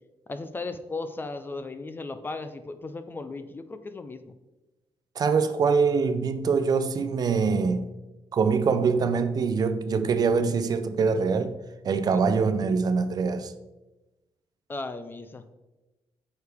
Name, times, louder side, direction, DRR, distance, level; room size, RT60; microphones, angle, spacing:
voice 1, 0.3-4.3 12.0-12.2 14.7-15.4, left 3 dB, 20° left, 0.4 m, -36 dB
voice 2, 5.2-7.9 8.3-11.5 11.8-13.5, right 5 dB, 40° right, 0.6 m, -24 dB
9.1 x 6.6 x 3.5 m
wide cardioid pair, 175°, 10 cm